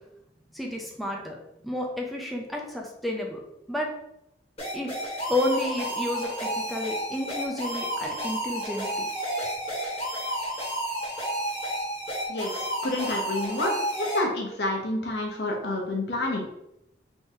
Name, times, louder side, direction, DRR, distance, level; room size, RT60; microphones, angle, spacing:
voice 1, 0.5-1.4 1.6-3.4 3.7-3.9 4.7-4.9 5.3-9.1, left 1 dB, ahead, -1 dB, 0.4 m, -31 dB
sound 1, 4.6-14.2, equal, 35° left, 1.2 m, -31 dB
voice 2, 12.3-16.6, left 1 dB, 70° left, 0 dB, 0.8 m, -29 dB
3.5 x 3.0 x 2.7 m, 0.83 s
head